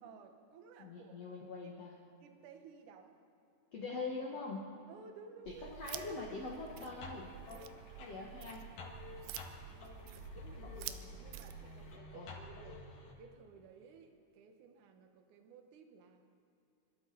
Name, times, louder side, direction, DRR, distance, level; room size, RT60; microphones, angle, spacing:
voice 1, 0.0-1.3 1.6-1.7 2.2-3.2 4.9-5.7 7.5-8.2 9.5-12.8 13.2-16.3, right 5 dB, 65° right, 5 dB, 2.1 m, -57 dB
voice 2, 0.8-2.0 3.7-4.7 5.5-7.3 8.0-8.7 12.1-12.3, left 3 dB, 75° left, -2 dB, 1.4 m, -43 dB
sound 1, 5.5-12.0, right 13 dB, 85° right, 2.9 m, -49 dB
sound 2, 5.8-13.1, left 3 dB, 55° left, 2.9 m, -51 dB
27.0 x 13.0 x 4.0 m, 2.7 s
omnidirectional pair, 4.9 m